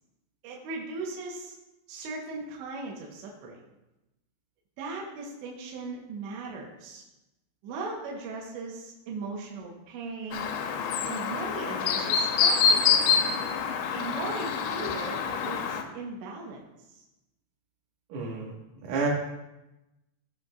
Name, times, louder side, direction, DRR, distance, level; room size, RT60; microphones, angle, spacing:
voice 1, 0.4-1.5 1.9-3.6 4.8-7.0 7.6-10.5 11.1-13.3 13.9-16.6, right 3 dB, 75° right, -2 dB, 3.3 m, -38 dB
Chirp tweet, 10.3-15.8, left 6 dB, 85° left, 2.5 m, -26 dB
voice 2, 18.1-19.1, right 4 dB, 90° right, -3 dB, 4.3 m, -31 dB
17.5 x 5.9 x 2.5 m, 0.97 s
omnidirectional pair, 5.4 m